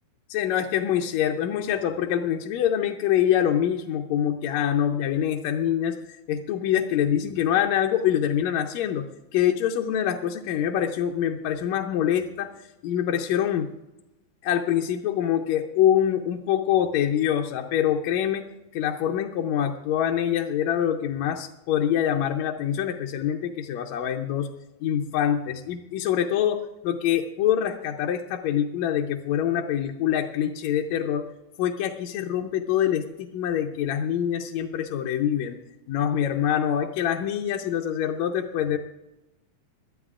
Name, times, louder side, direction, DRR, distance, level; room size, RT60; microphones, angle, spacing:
voice 1, 0.3-6.0 6.3-9.1 9.3-12.5 12.8-13.7 14.4-18.4 18.7-24.5 24.8-31.3 31.6-35.6 35.9-38.8, left 10 dB, 70° left, 2 dB, 1.9 m, -25 dB
22.5 x 13.0 x 2.5 m, 0.93 s
omnidirectional pair, 3.6 m